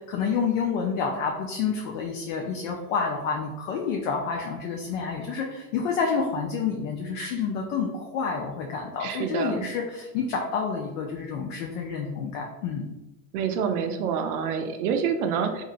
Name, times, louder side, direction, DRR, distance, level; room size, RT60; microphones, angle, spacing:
voice 1, 0.1-12.9, left 5 dB, 55° left, 1 dB, 0.5 m, -29 dB
voice 2, 9.0-9.7 13.3-15.6, right 7 dB, 65° right, 6 dB, 0.6 m, -27 dB
2.9 x 2.6 x 2.4 m, 1.0 s
supercardioid pair, 145°, 48 cm